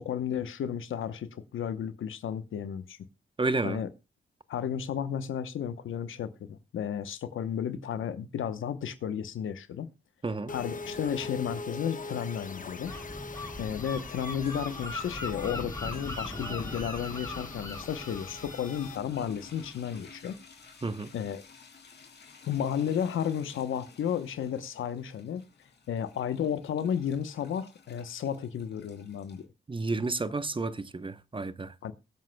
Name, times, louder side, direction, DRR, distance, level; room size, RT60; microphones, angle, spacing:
voice 1, 0.0-3.0 3.6-3.9 4.5-9.9 10.5-12.9 13.6-20.4 21.1-21.4 22.5-25.5 25.9-29.5 31.8-31.9, left 8 dB, 85° left, 0.9 m, -33 dB
voice 2, 3.4-3.8 10.2-10.5 20.8-21.1 29.7-31.7, right 3 dB, 25° right, 0.8 m, -31 dB
sound 1, 10.5-19.0, left 3 dB, 40° left, 1.1 m, -42 dB
Gull seagull, 12.8-20.3, left 2 dB, 20° left, 4.5 m, -40 dB
sound 2, 14.4-29.4, left 5 dB, 55° left, 2.5 m, -53 dB
22.0 x 7.7 x 2.2 m
cardioid pair, 65°, 20 cm